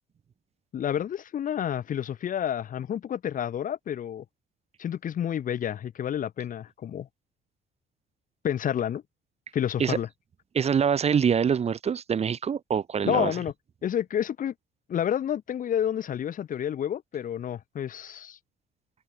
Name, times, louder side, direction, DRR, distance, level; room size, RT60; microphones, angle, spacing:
voice 1, 0.7-4.2 4.8-7.1 8.4-9.0 9.5-10.1 13.0-13.5 13.8-14.5 14.9-18.4, left 9 dB, 50° left, 5.0 m, -29 dB
voice 2, 10.5-13.3, right 7 dB, 40° right, 2.1 m, -25 dB
cardioid pair, 110°, 17 cm